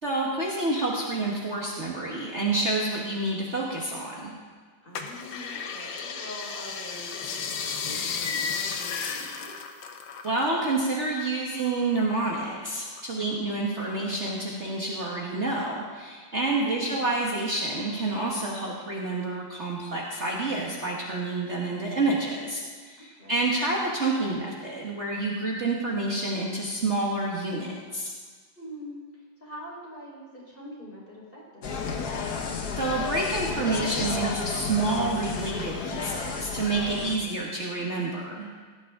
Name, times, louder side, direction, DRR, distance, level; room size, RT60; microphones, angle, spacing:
voice 1, 0.0-4.3 10.2-28.1 32.8-38.5, right 2 dB, 40° right, -3 dB, 1.6 m, -28 dB
voice 2, 4.8-9.6 13.1-13.5 16.7-17.1 23.0-23.5 28.5-31.9 37.0-37.5, equal, 30° left, -5 dB, 4.5 m, -44 dB
sound 1, 5.0-10.8 11.1-12.4 12.8-13.7 14.1-14.2, left 6 dB, 85° left, 1.7 m, -34 dB
Insect, 31.6-37.2, left 5 dB, 60° left, 1.6 m, -32 dB
17.5 x 12.5 x 3.7 m, 1.5 s
omnidirectional pair, 2.0 m